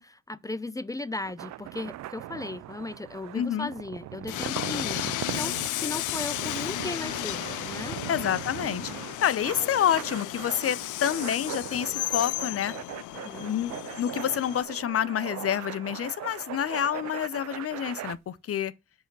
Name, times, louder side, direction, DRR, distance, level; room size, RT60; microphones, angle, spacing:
voice 1, 0.0-8.0 13.2-13.5, left 2 dB, 10° left, 0.5 m, -36 dB
sound 1, 1.1-18.1, right 14 dB, 65° right, 0.5 m, -40 dB
voice 2, 3.3-3.7 8.1-8.9 9.2-12.8 13.4-18.7, left 10 dB, 50° left, 0.8 m, -28 dB
Train, 4.3-14.6, left 16 dB, 85° left, 0.5 m, -34 dB
5.7 x 4.9 x 5.4 m
cardioid pair, 90°, 30 cm